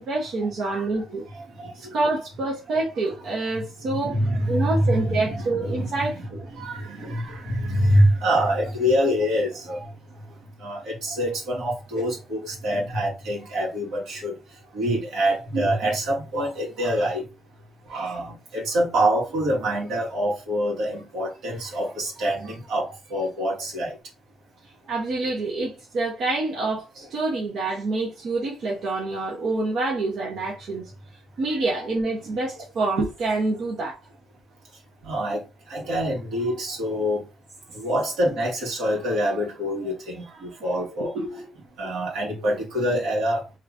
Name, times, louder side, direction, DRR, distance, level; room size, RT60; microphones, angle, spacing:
voice 1, 0.0-1.2 1.7-4.2 4.5-6.4 24.9-30.9 31.4-34.0 41.1-41.4, right 2 dB, 70° right, 1.0 m, -27 dB
voice 2, 0.6-1.0 1.3-2.0 3.0-3.1 3.8-17.3 17.8-24.0 34.7-37.2 37.7-41.1 41.8-43.5, equal, 85° right, 1.8 m, -26 dB
3.1 x 2.5 x 3.4 m
cardioid pair, 90°, 0 cm